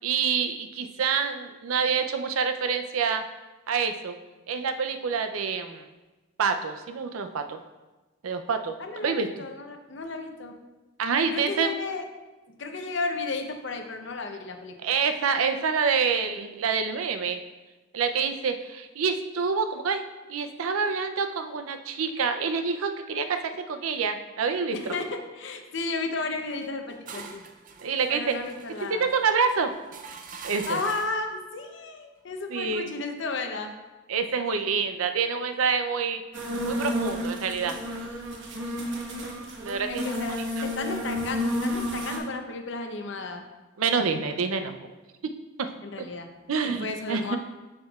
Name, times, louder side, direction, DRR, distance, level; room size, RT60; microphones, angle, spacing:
voice 1, 0.0-3.2 3.7-4.1 4.5-5.8 6.4-7.6 8.2-9.3 11.0-11.7 14.8-17.4 17.9-20.0 20.3-24.8 27.8-28.4 28.9-29.7 30.4-30.8 32.5-32.9 34.1-36.2 36.7-37.8 39.6-40.1 43.8-44.7 45.6-45.7 46.5-47.4, right 5 dB, 90° right, 7 dB, 0.5 m, -27 dB
voice 2, 8.8-10.5 11.3-12.0 12.6-14.9 24.7-27.4 28.1-29.1 30.7-33.7 34.5-34.7 39.9-43.5 45.8-46.3 46.6-47.4, left 3 dB, 60° left, 5 dB, 0.7 m, -33 dB
sound 1, 26.6-31.3, right 5 dB, 40° right, 0.5 m, -44 dB
sound 2, 36.3-42.2, equal, 65° right, 1.1 m, -31 dB
7.3 x 6.5 x 2.4 m, 1.2 s
head